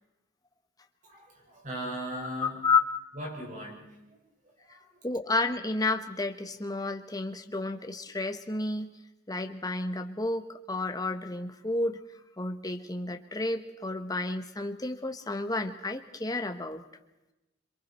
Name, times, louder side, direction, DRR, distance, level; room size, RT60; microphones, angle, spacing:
voice 1, 1.0-2.7 3.1-5.1, equal, 40° right, -1 dB, 5.6 m, -39 dB
voice 2, 2.4-2.8 5.0-9.0 9.3-12.0 12.4-16.8, left 3 dB, 20° left, 5 dB, 1.2 m, -31 dB
27.0 x 23.0 x 4.4 m, 0.96 s
head